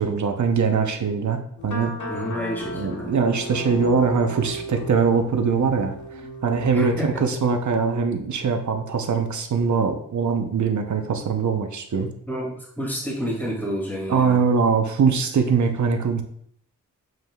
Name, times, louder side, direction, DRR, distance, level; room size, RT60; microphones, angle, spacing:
voice 1, 0.0-1.9 2.8-5.9 6.4-12.1 14.1-16.2, right 5 dB, 60° right, 5 dB, 0.8 m, -22 dB
sound 1, 1.6-6.8, equal, 65° left, 1.2 m, -35 dB
voice 2, 2.1-3.1 6.7-7.2 12.3-14.4, equal, 5° left, -4 dB, 2.5 m, -29 dB
7.5 x 5.3 x 2.4 m, 0.66 s
wide cardioid pair, 100°, 32 cm